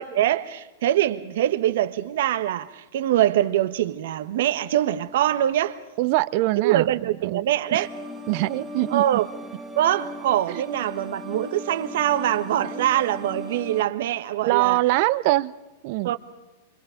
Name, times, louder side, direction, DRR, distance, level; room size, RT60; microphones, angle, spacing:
voice 1, 0.0-5.8 6.6-7.9 8.9-9.3 9.7-14.8 16.0-16.2, right 12 dB, 70° right, 1.3 m, -23 dB
voice 2, 6.0-6.9 7.2-7.5 7.7-7.9 8.3-9.2 10.5-10.6 11.3-11.4 12.7-12.8 14.4-15.5 15.8-16.1, right 19 dB, 55° right, 0.9 m, -23 dB
sound 1, 7.7-13.8, left 1 dB, 5° left, 2.4 m, -38 dB
26.5 x 24.0 x 5.2 m
hypercardioid pair, 125°, 0 cm